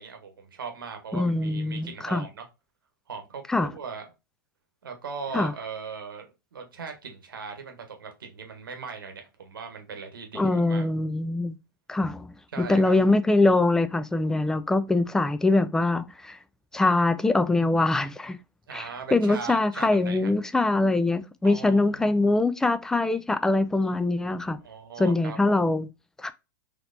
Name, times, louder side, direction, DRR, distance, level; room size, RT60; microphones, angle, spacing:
voice 1, 0.0-2.5 3.1-4.0 4.8-10.9 12.5-13.0 18.7-20.3 21.4-22.4 24.6-25.5, right 5 dB, 85° right, 1.0 m, -39 dB
voice 2, 1.1-2.2 3.5-3.7 5.3-5.5 10.3-11.6 11.9-12.3 12.7-16.4 16.7-18.4 18.7-24.6 25.0-25.9 26.2-26.3, left 2 dB, 5° left, 0.3 m, -23 dB
4.1 x 2.9 x 2.5 m
hypercardioid pair, 110°, 11 cm